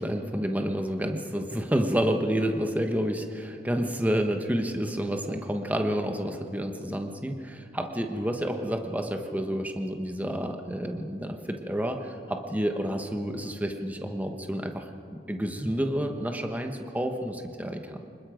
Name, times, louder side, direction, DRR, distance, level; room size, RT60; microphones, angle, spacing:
voice 1, 0.0-14.8 15.3-18.0, equal, 10° right, 4 dB, 1.2 m, -29 dB
25.5 x 21.0 x 5.1 m, 2.5 s
head